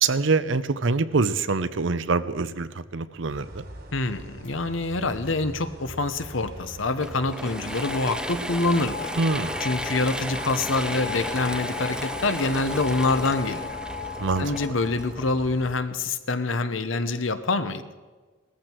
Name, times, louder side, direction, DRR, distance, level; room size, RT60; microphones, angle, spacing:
voice 1, 0.0-3.6 9.1-9.6 14.2-14.5, right 4 dB, 70° right, 14 dB, 0.7 m, -25 dB
sound 1, 3.3-15.7, right 1 dB, 50° right, 2.0 m, -43 dB
voice 2, 3.9-9.1 9.6-13.8 14.4-17.8, left 3 dB, 80° left, 11 dB, 1.1 m, -26 dB
Mechanisms / Drill, 7.0-15.6, right 1 dB, 5° right, 0.7 m, -34 dB
sound 2, 7.5-15.1, left 6 dB, 50° left, 1.3 m, -37 dB
18.5 x 14.0 x 4.6 m, 1.4 s
head